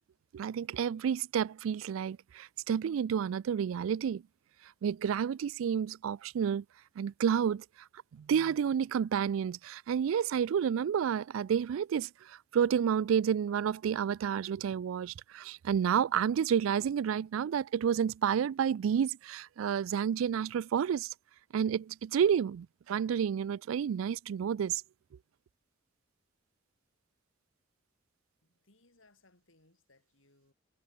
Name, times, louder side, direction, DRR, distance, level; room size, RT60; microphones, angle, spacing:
voice 1, 0.3-4.2 4.8-6.6 7.0-7.9 8.1-21.1 21.5-24.8, right 8 dB, 75° right, 0.3 m, -30 dB
voice 2, 28.4-30.5, left 2 dB, 70° left, 5.2 m, -66 dB
head